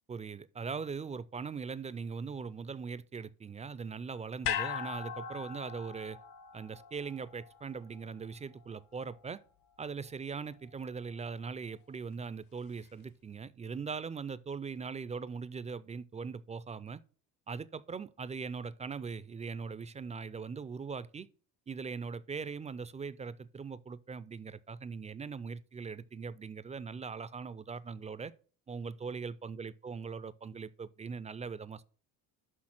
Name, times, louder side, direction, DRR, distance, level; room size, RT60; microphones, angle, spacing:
voice 1, 0.1-6.2 6.5-9.4 9.8-17.0 17.5-21.3 21.7-28.3 28.7-31.8, right 5 dB, 20° right, 0.3 m, -40 dB
sound 1, 4.4-8.8 9.1-9.2, left 9 dB, 60° left, 0.9 m, -39 dB
6.4 x 5.6 x 5.9 m
supercardioid pair, 95°, 40 cm